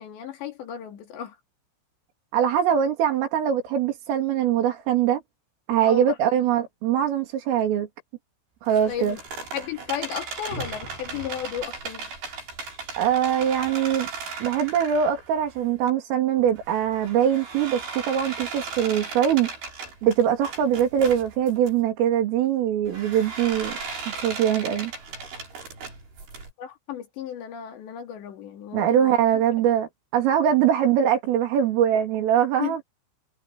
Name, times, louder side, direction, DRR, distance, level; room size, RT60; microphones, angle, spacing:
voice 1, 0.0-1.3 5.9-6.2 8.9-9.2 9.5-12.1 26.6-29.4 32.6-32.8, left 9 dB, 65° left, 4.8 m, -34 dB
voice 2, 2.3-5.2 5.7-7.9 8.6-9.2 13.0-14.1 14.4-19.5 20.0-23.8 24.1-24.9 28.7-32.8, right 9 dB, 80° right, 5.9 m, -22 dB
sound 1, 8.7-15.9 16.4-21.7 22.9-26.5, right 4 dB, 55° right, 9.9 m, -37 dB
omnidirectional pair, 5.8 m